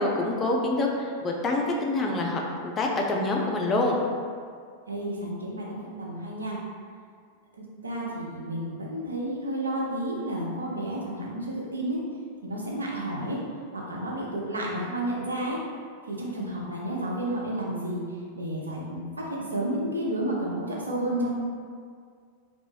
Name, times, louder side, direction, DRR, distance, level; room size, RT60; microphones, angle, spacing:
voice 1, 0.0-4.0, left 2 dB, 25° left, 0 dB, 0.4 m, -26 dB
voice 2, 4.9-6.6 7.8-12.0 12.4-13.4 13.7-15.6 16.1-18.0 18.3-19.3 19.5-21.3, right 1 dB, 75° right, -4 dB, 0.5 m, -31 dB
2.6 x 2.2 x 3.0 m, 2.1 s
figure-of-eight pair, 90°, 0 cm